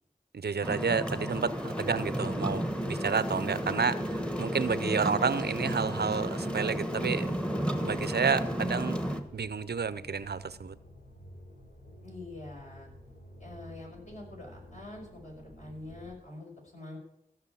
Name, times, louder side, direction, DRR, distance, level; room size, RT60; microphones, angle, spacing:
voice 1, 0.3-7.4 7.8-9.0 9.3-10.7, right 5 dB, 90° right, 0.6 m, -30 dB
sound 1, 0.6-9.2, equal, 5° left, 1.5 m, -32 dB
sound 2, 5.4-16.1, equal, 70° left, 4.7 m, -51 dB
voice 2, 12.0-12.9 13.4-17.0, left 2 dB, 45° left, 5.8 m, -45 dB
15.5 x 6.1 x 8.4 m
wide cardioid pair, 45°, 16 cm